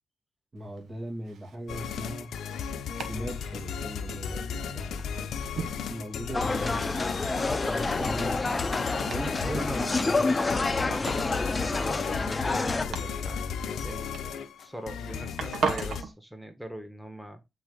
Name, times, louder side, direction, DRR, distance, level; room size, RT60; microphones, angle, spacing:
voice 1, 0.5-2.3 3.0-5.0 5.9-6.8 7.7-8.4 9.0-10.0, right 1 dB, 45° right, 2.5 m, -38 dB
Domestic sounds home sounds, 0.6-16.1, right 5 dB, 85° right, 1.1 m, -40 dB
sound 1, 1.7-16.0, left 6 dB, 90° left, 0.7 m, -35 dB
sound 2, 6.3-12.8, left 3 dB, 35° left, 0.6 m, -28 dB
voice 2, 9.4-17.4, equal, 5° right, 1.7 m, -41 dB
8.7 x 4.0 x 3.9 m
cardioid pair, 50°, 0 cm